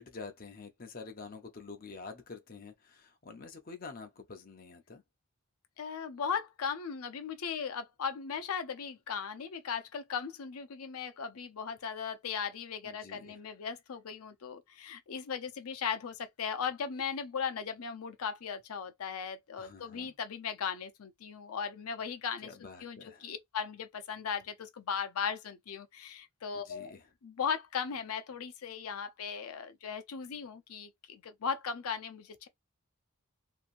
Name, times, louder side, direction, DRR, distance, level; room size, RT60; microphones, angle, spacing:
voice 1, 0.0-5.0 12.8-13.4 19.6-20.2 22.4-23.3 26.5-27.1, left 4 dB, 40° left, 0.6 m, -48 dB
voice 2, 5.8-22.5 22.8-26.9 27.2-32.5, left 6 dB, 85° left, 0.5 m, -37 dB
2.9 x 2.6 x 2.5 m
head